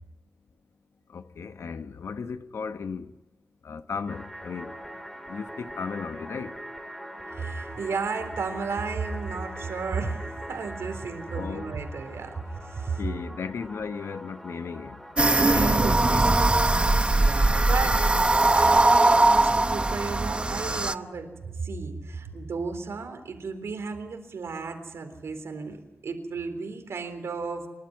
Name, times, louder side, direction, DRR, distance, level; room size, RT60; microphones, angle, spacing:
voice 1, 1.1-3.1 3.6-4.8 5.3-6.6 11.2-11.8 13.0-15.0 15.4-16.4 17.4-17.9, left 5 dB, 80° left, 1.1 m, -36 dB
sound 1, 4.1-15.4, equal, 10° left, 3.2 m, -42 dB
voice 2, 7.3-13.0 15.4-15.9 16.8-18.0 18.5-25.8 26.0-27.7, right 4 dB, 85° right, 3.8 m, -33 dB
sound 2, 15.2-20.9, right 2 dB, 25° right, 0.8 m, -21 dB
27.0 x 12.5 x 9.7 m
wide cardioid pair, 90°, 4 cm